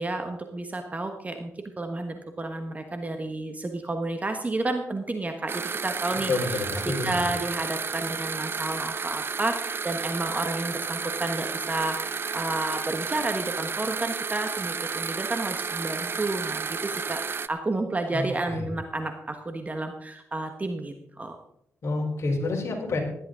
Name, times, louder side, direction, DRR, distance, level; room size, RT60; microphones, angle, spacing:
voice 1, 0.0-1.5 1.8-6.6 7.0-21.4, right 2 dB, 25° right, 5 dB, 1.3 m, -31 dB
sound 1, 5.5-17.5, right 5 dB, 45° right, 0.6 m, -32 dB
voice 2, 6.3-7.3 18.1-18.7 21.8-23.0, left 3 dB, 55° left, -1 dB, 3.8 m, -29 dB
17.0 x 11.0 x 3.8 m, 0.77 s
cardioid pair, 80°, 6 cm